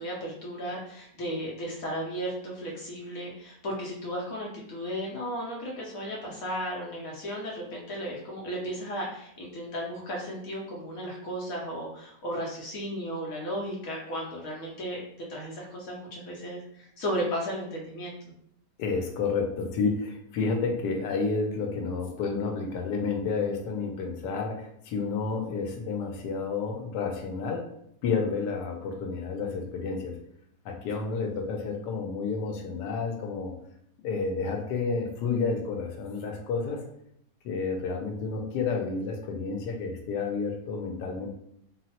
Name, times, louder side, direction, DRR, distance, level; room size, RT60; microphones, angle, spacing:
voice 1, 0.0-15.0 15.3-18.1, equal, 65° left, -2 dB, 1.0 m, -35 dB
voice 2, 18.8-27.7 28.0-30.2 30.6-33.5 34.0-36.8 37.4-41.3, left 4 dB, 85° left, 2 dB, 1.2 m, -30 dB
3.7 x 2.0 x 2.8 m, 0.74 s
omnidirectional pair, 1.8 m